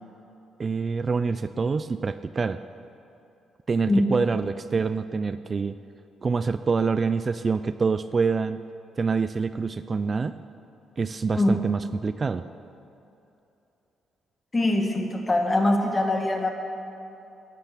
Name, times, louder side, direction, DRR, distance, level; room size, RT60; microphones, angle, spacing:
voice 1, 0.6-2.6 3.7-5.8 6.2-8.6 9.0-10.3 11.0-12.4, right 4 dB, 35° right, 12 dB, 0.3 m, -26 dB
voice 2, 3.9-4.2 11.3-11.6 14.5-16.5, left 1 dB, 25° left, 3 dB, 1.8 m, -23 dB
12.0 x 11.5 x 7.0 m, 2.9 s
cardioid pair, 90°, 0 cm